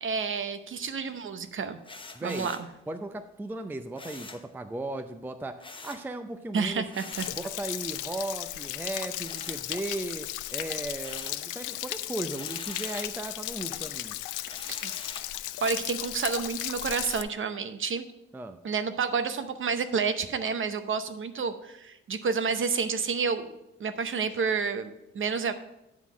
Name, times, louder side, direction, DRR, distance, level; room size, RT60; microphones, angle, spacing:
voice 1, 0.0-1.8 2.2-2.6 6.5-7.3 14.7-14.9 15.6-18.1 18.6-23.5 23.8-25.5, right 5 dB, 40° right, 10 dB, 0.8 m, -30 dB
sound 1, 1.8-2.7 4.0-4.5 5.6-6.1 6.9-7.4 9.2-10.1 10.5-11.5 12.3-13.2 14.5-15.3, left 3 dB, 15° left, 0.8 m, -45 dB
voice 2, 2.1-2.5 2.9-6.8 7.3-14.2 18.3-18.6, right 2 dB, 5° right, 8 dB, 0.5 m, -36 dB
Stream / Splash splatter / Trickle dribble, 7.1-17.2, left 15 dB, 85° left, 0.5 m, -35 dB
10.5 x 3.8 x 6.0 m, 0.88 s
cardioid pair, 90°, 30 cm